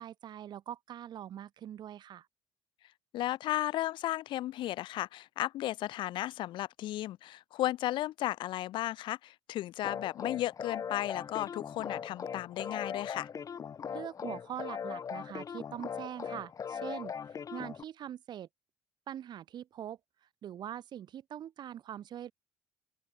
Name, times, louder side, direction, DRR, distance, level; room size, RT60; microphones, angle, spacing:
voice 1, 0.0-2.3 13.9-17.1 17.5-18.5 19.1-20.0 20.4-22.3, right 10 dB, 55° right, 6.5 m, -43 dB
voice 2, 3.1-13.3, left 14 dB, 65° left, 2.4 m, -34 dB
sound 1, 9.8-17.8, left 7 dB, 40° left, 1.3 m, -40 dB
open air
hypercardioid pair, 65°, 9 cm